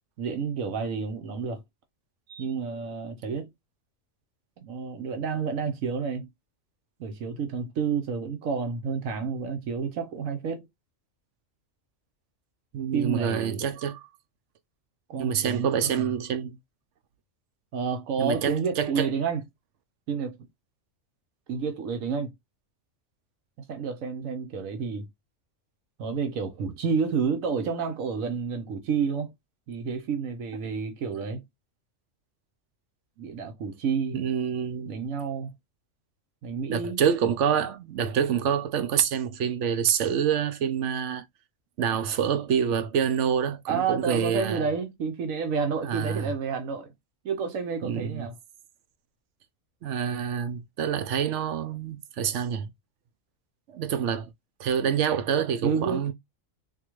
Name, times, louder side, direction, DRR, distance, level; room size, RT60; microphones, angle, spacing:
voice 1, 0.2-1.6 2.4-3.5 4.6-6.3 7.0-10.6 12.9-13.7 15.1-16.1 17.7-19.4 20.1-20.4 21.5-22.3 23.7-25.1 26.0-29.3 29.7-31.4 33.2-34.2 34.9-35.5 36.4-37.0 43.7-46.9 47.2-48.3 55.6-56.1, right 5 dB, 85° right, 1.2 m, -30 dB
voice 2, 12.7-14.1 15.2-16.6 18.2-19.1 34.1-35.0 36.7-41.2 41.8-44.6 45.8-46.3 47.8-48.3 49.8-52.7 53.7-54.3 54.6-56.1, right 8 dB, 70° right, 0.9 m, -27 dB
3.7 x 2.7 x 3.0 m
omnidirectional pair, 1.4 m